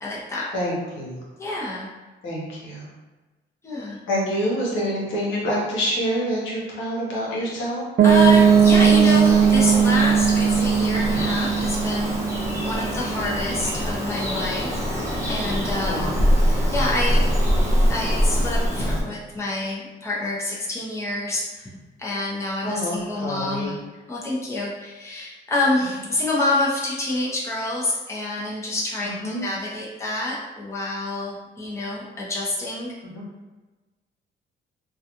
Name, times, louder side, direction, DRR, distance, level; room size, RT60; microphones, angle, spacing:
voice 1, 0.0-0.5 1.4-1.9 3.6-4.0 8.0-12.4 12.6-16.2 16.5-17.2 17.9-21.7 22.0-23.8 24.1-33.0, left 2 dB, 15° left, -5 dB, 0.7 m, -27 dB
voice 2, 0.5-1.2 2.2-2.9 4.1-7.9 15.8-16.2 22.6-23.7 29.0-29.5 33.1-33.2, equal, 80° left, -4 dB, 0.9 m, -27 dB
Bird vocalization bird call bird song, 8.0-19.0, equal, 15° right, 0.8 m, -24 dB
Piano, 8.0-13.7, right 7 dB, 50° right, 0.4 m, -18 dB
2.4 x 2.3 x 2.8 m, 1.2 s
cardioid pair, 90°, 20 cm